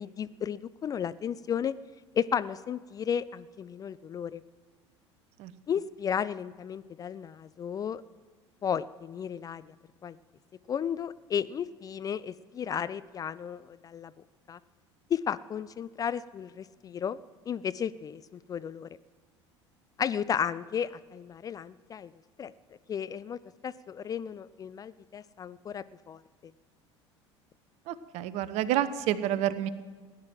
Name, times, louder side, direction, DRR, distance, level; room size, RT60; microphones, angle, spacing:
voice 1, 0.0-1.7 2.1-4.4 5.7-8.0 8.6-9.6 10.0-10.2 10.7-14.1 14.5-14.6 15.1-17.2 17.5-18.9 20.0-22.1 22.4-22.5 22.9-26.2, left 8 dB, 25° left, 16 dB, 0.4 m, -33 dB
voice 2, 27.9-29.7, right 12 dB, 45° right, 15 dB, 0.9 m, -29 dB
17.0 x 9.6 x 7.5 m, 1.4 s
figure-of-eight pair, 70°, 15 cm